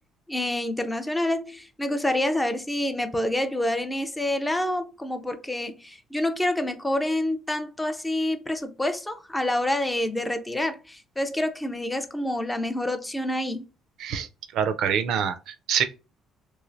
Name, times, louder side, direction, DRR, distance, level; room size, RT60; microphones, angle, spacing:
voice 1, 0.3-13.7, left 1 dB, 10° left, 0.3 m, -27 dB
voice 2, 14.5-15.8, right 8 dB, 65° right, 0.4 m, -25 dB
3.2 x 3.1 x 2.5 m
cardioid pair, 160°, 0 cm